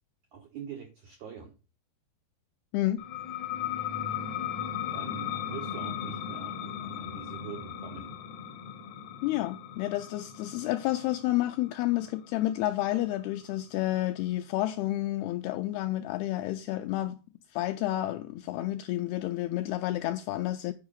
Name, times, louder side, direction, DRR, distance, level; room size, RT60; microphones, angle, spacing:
voice 1, 0.3-1.5 4.8-8.1, right 8 dB, 90° right, 1.6 m, -44 dB
sound 1, 3.0-14.3, left 9 dB, 70° left, 1.7 m, -37 dB
voice 2, 9.2-17.2 17.5-20.7, left 15 dB, 85° left, 2.2 m, -30 dB
8.8 x 4.7 x 5.1 m
omnidirectional pair, 5.0 m